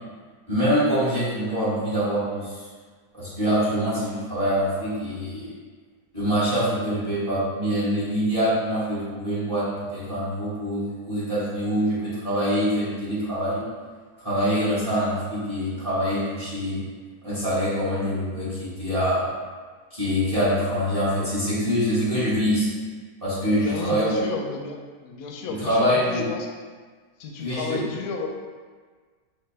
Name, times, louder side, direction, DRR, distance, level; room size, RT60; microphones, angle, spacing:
voice 1, 0.5-2.6 3.1-5.5 6.1-9.6 9.9-13.6 14.2-16.8 17.2-19.3 19.9-22.7 23.2-24.1 25.6-26.2 27.4-27.8, equal, 20° right, -10 dB, 1.5 m, -24 dB
voice 2, 23.6-26.5 27.2-28.3, left 4 dB, 75° left, 2 dB, 1.0 m, -32 dB
4.8 x 3.1 x 3.3 m, 1.5 s
omnidirectional pair, 1.7 m